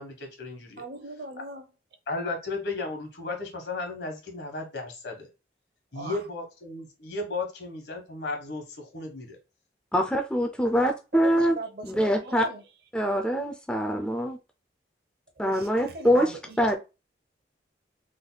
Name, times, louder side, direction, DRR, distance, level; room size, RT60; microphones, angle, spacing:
voice 1, 0.0-0.8 2.1-5.3 5.9-9.4, left 3 dB, 70° left, 1.2 m, -34 dB
voice 2, 0.8-1.7 5.9-6.2 11.1-12.6 15.4-16.8, right 2 dB, 60° right, 0.7 m, -39 dB
voice 3, 9.9-11.6 11.8-12.5 12.9-14.4 15.4-16.8, equal, 5° left, 0.3 m, -24 dB
3.4 x 2.2 x 3.9 m
head